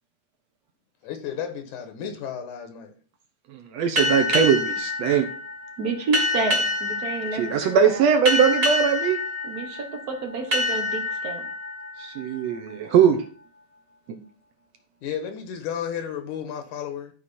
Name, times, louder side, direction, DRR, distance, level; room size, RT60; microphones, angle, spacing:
voice 1, 1.0-2.9 15.0-17.1, left 8 dB, 80° left, 6 dB, 2.6 m, -33 dB
voice 2, 3.7-5.3 7.3-9.2 12.0-13.2, right 7 dB, 70° right, 6 dB, 1.8 m, -20 dB
sound 1, 3.9-13.2, left 2 dB, 35° right, 1.8 m, -28 dB
voice 3, 5.8-8.0 9.4-11.4, right 4 dB, 85° right, 3 dB, 0.8 m, -30 dB
12.5 x 4.8 x 4.2 m, 0.43 s
omnidirectional pair, 3.4 m